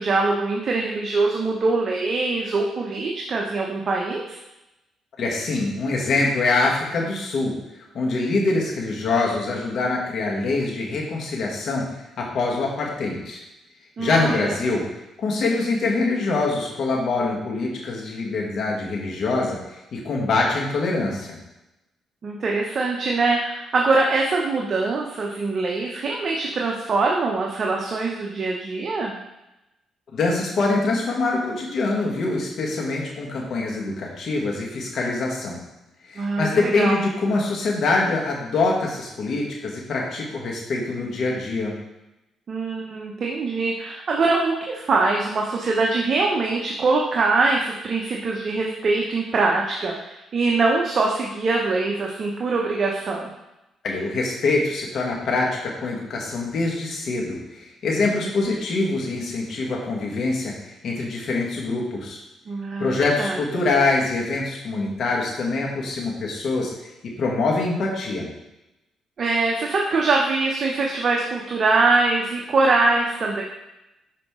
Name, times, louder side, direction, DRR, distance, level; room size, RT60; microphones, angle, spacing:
voice 1, 0.0-4.4 14.0-14.6 22.2-29.2 36.2-37.0 42.5-53.3 62.5-63.6 69.2-73.4, right 3 dB, 50° right, -1 dB, 0.8 m, -23 dB
voice 2, 5.2-7.5 7.9-13.4 14.0-14.8 15.2-21.4 30.1-35.6 36.1-41.7 53.8-62.2 62.8-66.7 67.0-68.3, left 3 dB, 60° left, -2 dB, 1.5 m, -24 dB
5.9 x 4.9 x 3.7 m, 0.94 s
cardioid pair, 90°, 0 cm